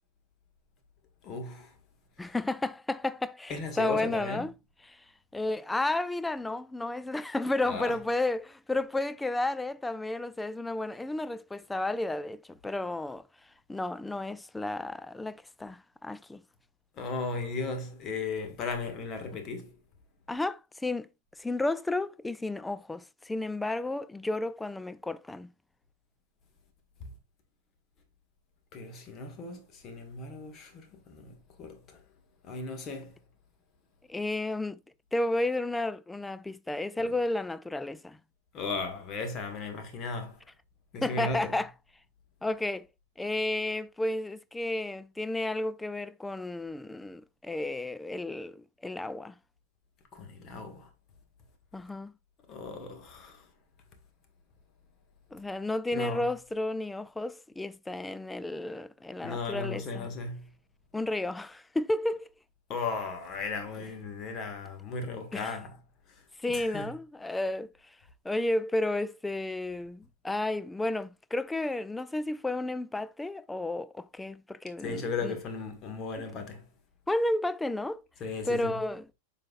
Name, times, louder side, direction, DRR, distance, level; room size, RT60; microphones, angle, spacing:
voice 1, 1.2-1.7 2.2-2.3 3.5-4.5 7.6-7.9 16.9-19.8 28.7-32.0 32.4-33.2 38.5-40.4 40.9-41.5 50.1-50.9 52.5-53.5 55.9-56.3 59.2-60.5 62.7-65.8 66.1-66.9 74.8-76.7 78.2-78.8, left 3 dB, 30° left, 1.7 m, -36 dB
voice 2, 2.2-4.5 4.9-5.0 5.3-13.2 13.7-16.4 20.3-21.1 21.4-25.5 34.1-34.8 35.1-38.2 41.0-41.7 42.4-42.9 43.2-49.3 51.7-52.1 55.3-60.1 60.9-62.3 65.3-65.5 66.4-67.7 68.2-75.4 77.1-78.1 78.5-79.1, left 2 dB, 5° left, 0.4 m, -32 dB
7.5 x 5.7 x 2.4 m
figure-of-eight pair, 90°, 0 cm